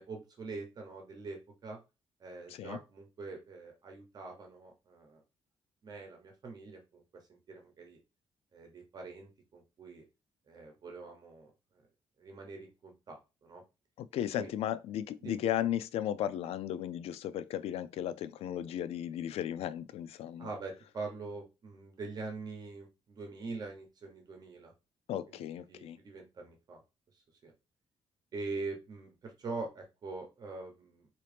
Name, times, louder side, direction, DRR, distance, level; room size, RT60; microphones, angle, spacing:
voice 1, 0.0-1.8 2.2-5.2 5.8-8.0 8.5-10.0 10.5-11.8 12.2-13.6 14.4-14.5 15.2-15.4 20.4-24.7 25.3-26.8 27.4-27.5 28.3-31.1, right 3 dB, 40° right, 1.0 m, -44 dB
voice 2, 14.0-20.5 25.1-26.0, left 11 dB, 85° left, 0.4 m, -35 dB
3.7 x 2.9 x 3.4 m
cardioid pair, 160°, 10 cm